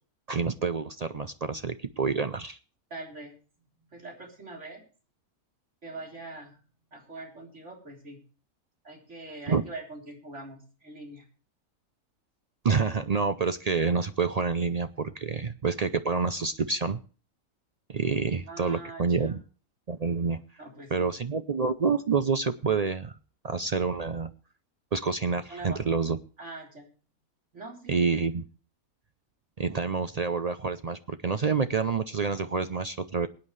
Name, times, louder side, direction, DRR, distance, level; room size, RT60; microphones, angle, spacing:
voice 1, 0.3-2.6 9.5-9.6 12.6-17.0 17.9-19.4 19.9-20.4 20.9-23.2 23.4-24.3 24.9-26.2 27.9-28.5 29.6-33.3, right 5 dB, 70° right, 11 dB, 0.3 m, -28 dB
voice 2, 2.9-3.4 3.9-4.8 5.8-6.6 6.9-8.2 8.8-11.3 18.5-19.4 20.6-21.1 25.5-25.8 26.4-26.9 27.5-28.0, right 2 dB, 50° right, 1 dB, 4.0 m, -43 dB
22.0 x 9.3 x 3.2 m, 0.38 s
omnidirectional pair, 1.5 m